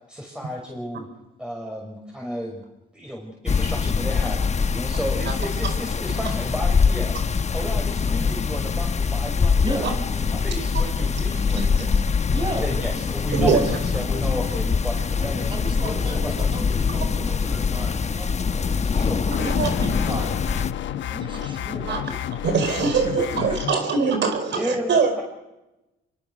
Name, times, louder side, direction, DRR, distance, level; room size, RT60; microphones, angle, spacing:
voice 1, 0.1-1.1 1.4-2.6 2.9-7.2 7.5-10.0 10.3-11.9 12.6-16.4 16.7-16.8 19.0-19.2 23.6-23.8 24.5-25.2, equal, 5° right, -1 dB, 6.1 m, -33 dB
sound 1, 3.5-20.7, left 5 dB, 35° left, 1.0 m, -23 dB
voice 2, 11.5-12.0 13.4-13.6 19.3-19.9 21.9-22.0 22.4-25.1, right 5 dB, 65° right, 6 dB, 4.5 m, -23 dB
voice 3, 12.3-12.7 15.2-20.3 21.0-22.2 23.2-23.6, right 1 dB, 25° right, 5 dB, 6.2 m, -34 dB
sound 2, 19.3-23.7, left 10 dB, 70° left, 1.1 m, -30 dB
26.5 x 23.5 x 6.4 m, 0.96 s
cardioid pair, 90°, 20 cm